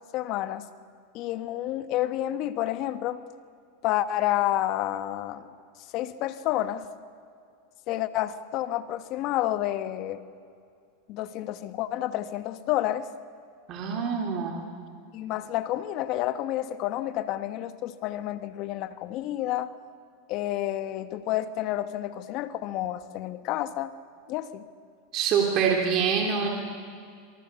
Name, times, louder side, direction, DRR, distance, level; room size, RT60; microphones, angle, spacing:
voice 1, 0.1-0.7 1.1-3.2 3.8-5.5 5.9-6.8 7.9-10.2 11.1-13.1 15.1-19.7 20.3-23.9 24.3-24.6, left 13 dB, 50° left, 11 dB, 1.3 m, -29 dB
voice 2, 13.7-14.6 25.1-26.5, right 6 dB, 45° right, 0 dB, 3.3 m, -25 dB
26.5 x 23.5 x 7.0 m, 2.3 s
supercardioid pair, 120°, 0 cm